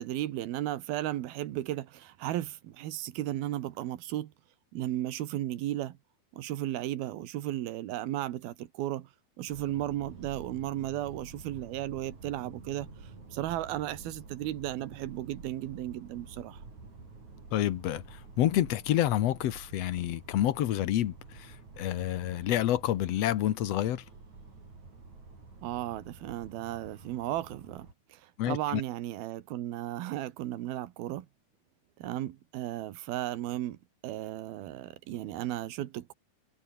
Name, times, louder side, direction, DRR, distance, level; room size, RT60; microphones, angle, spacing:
voice 1, 0.0-4.3 4.7-6.0 6.3-9.1 9.4-16.6 25.6-31.3 32.0-33.8 34.0-36.1, right 13 dB, 75° right, 3.2 m, -35 dB
sound 1, 9.5-27.9, right 4 dB, 50° right, 7.7 m, -49 dB
voice 2, 17.5-24.0 28.4-28.8, left 12 dB, 75° left, 1.5 m, -28 dB
omnidirectional pair, 4.4 m